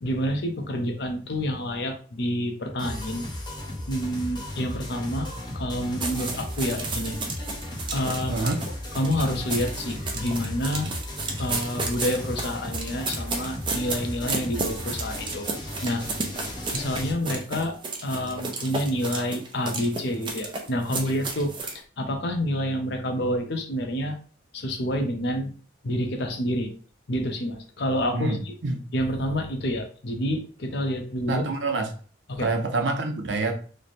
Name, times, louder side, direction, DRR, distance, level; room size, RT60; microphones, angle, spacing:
voice 1, 0.0-3.3 3.9-5.3 5.5-7.2 7.9-8.5 9.0-10.9 11.4-15.5 15.8-16.0 16.7-17.7 18.0-21.5 22.0-24.1 24.5-25.5 25.8-26.7 27.1-28.5 28.9-31.4 32.3-32.5, equal, 60° left, 4 dB, 0.7 m, -28 dB
sound 1, 2.8-17.1, left 1 dB, 25° left, 0.8 m, -36 dB
sound 2, 6.0-21.8, right 3 dB, 25° right, 0.5 m, -33 dB
voice 2, 8.3-8.6 28.1-28.8 31.3-31.9 32.4-33.5, right 3 dB, 75° right, 4 dB, 0.6 m, -26 dB
3.1 x 2.1 x 4.1 m, 0.42 s
head